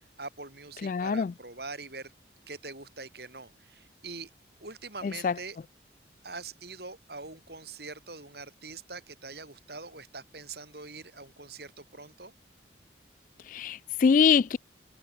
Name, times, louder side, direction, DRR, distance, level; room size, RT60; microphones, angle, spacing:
voice 1, 0.2-2.1 2.5-4.3 4.6-5.6 6.2-12.3, right 3 dB, 60° right, 6.2 m, -43 dB
voice 2, 0.8-1.3 5.0-5.3 13.5-14.6, left 6 dB, 45° left, 0.3 m, -24 dB
head